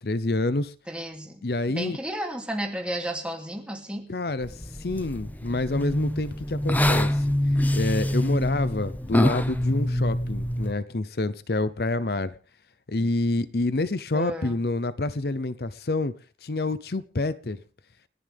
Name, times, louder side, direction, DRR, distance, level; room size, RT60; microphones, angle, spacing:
voice 1, 0.0-0.7 1.4-2.0 4.1-7.3 7.7-12.4 12.9-16.1 16.4-17.6, left 2 dB, 60° left, 0.8 m, -27 dB
voice 2, 0.9-1.4 1.7-4.1 14.1-14.5, right 1 dB, 5° right, 2.8 m, -32 dB
sound 1, 4.4-10.7, left 1 dB, 10° left, 0.8 m, -26 dB
29.5 x 11.0 x 3.6 m
head